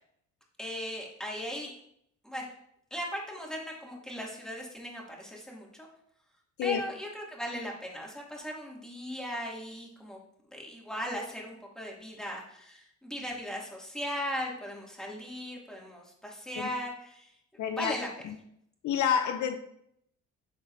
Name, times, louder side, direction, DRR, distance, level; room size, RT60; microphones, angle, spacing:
voice 1, 0.6-1.7 2.2-2.5 2.9-5.9 6.6-10.2 10.5-17.4 17.7-18.1, equal, ahead, 2.5 m, -38 dB
voice 2, 17.6-17.9 18.2-18.3 18.8-19.6, left 8 dB, 70° left, 0.7 m, -28 dB
13.5 x 4.5 x 2.7 m
cardioid pair, 90°, 30 cm